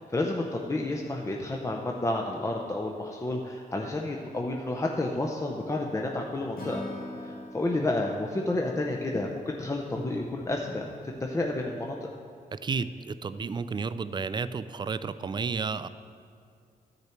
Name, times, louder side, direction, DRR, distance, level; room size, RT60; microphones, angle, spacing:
voice 1, 0.0-6.9 7.2-10.8 11.2-12.0, left 2 dB, 20° left, 0 dB, 0.6 m, -30 dB
Acoustic guitar / Strum, 6.6-9.8, left 1 dB, 65° left, 1.9 m, -42 dB
sound 1, 6.9-12.1, left 1 dB, 45° left, 1.3 m, -48 dB
voice 2, 12.5-15.9, right 5 dB, 30° right, 14 dB, 0.3 m, -32 dB
13.0 x 6.7 x 4.4 m, 2.3 s
cardioid pair, 110°, 16 cm